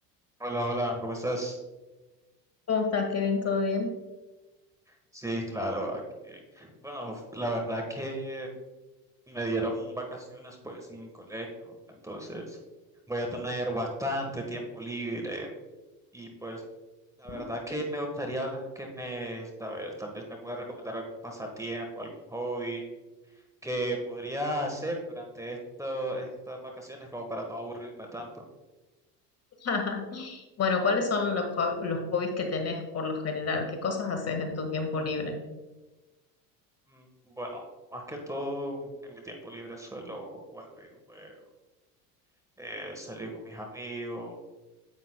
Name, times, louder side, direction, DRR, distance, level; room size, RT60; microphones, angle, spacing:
voice 1, 0.4-1.6 4.9-8.5 9.3-12.6 13.1-15.5 16.1-16.6 17.2-22.8 23.6-28.4 36.9-37.6 37.9-41.4 42.6-44.4, right 1 dB, 5° right, 1 dB, 1.3 m, -35 dB
voice 2, 2.7-3.9 17.3-17.4 29.6-35.3, left 4 dB, 30° left, 4 dB, 1.4 m, -29 dB
9.4 x 8.0 x 2.2 m, 1.1 s
hypercardioid pair, 80°, 48 cm